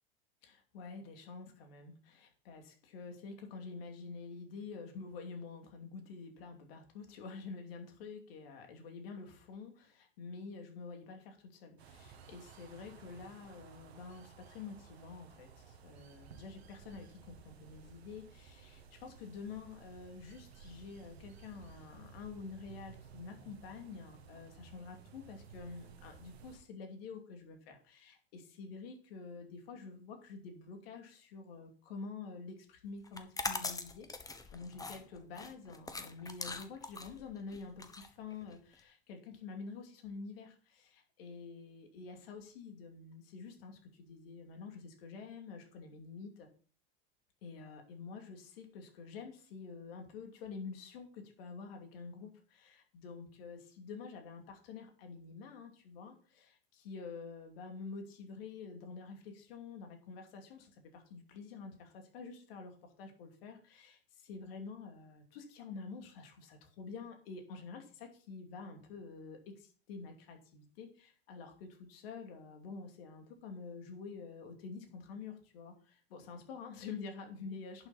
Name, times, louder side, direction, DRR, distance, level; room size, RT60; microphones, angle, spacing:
voice 1, 0.4-34.1 34.5-46.5 47.4-77.9, left 4 dB, 70° left, 4 dB, 2.7 m, -48 dB
sound 1, 11.8-26.6, right 6 dB, 85° right, 1.6 m, -56 dB
sound 2, 33.1-38.8, left 3 dB, 10° left, 1.1 m, -42 dB
11.0 x 6.2 x 4.3 m, 0.42 s
hypercardioid pair, 100°, 31 cm